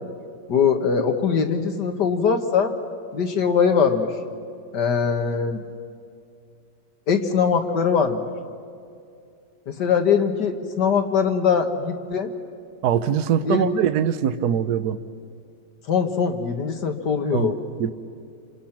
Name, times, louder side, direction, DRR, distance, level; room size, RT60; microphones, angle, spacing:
voice 1, 0.5-2.7 3.1-4.1 4.7-5.6 7.1-8.3 9.7-12.3 13.4-13.7 15.9-17.6, left 6 dB, 70° left, 5 dB, 2.1 m, -21 dB
voice 2, 12.8-15.0 17.3-17.5 17.8-17.9, right 9 dB, 65° right, 11 dB, 1.3 m, -22 dB
28.5 x 26.5 x 6.0 m, 2.4 s
omnidirectional pair, 1.9 m